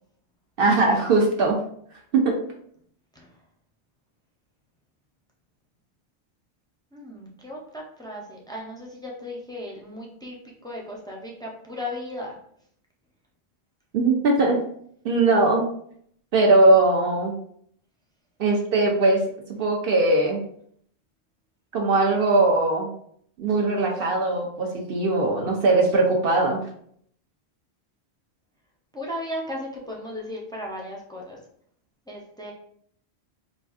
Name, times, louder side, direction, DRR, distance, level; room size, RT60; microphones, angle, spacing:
voice 1, 0.6-1.6 2.1-2.3 13.9-14.6 15.0-15.6 16.3-17.3 18.4-19.2 19.5-20.4 21.7-22.9 23.4-26.6, right 2 dB, 65° right, 1 dB, 0.7 m, -20 dB
voice 2, 6.9-12.4 28.9-31.4 32.1-32.5, left 1 dB, 5° left, -2 dB, 0.4 m, -36 dB
4.1 x 2.5 x 2.3 m, 0.64 s
omnidirectional pair, 1.1 m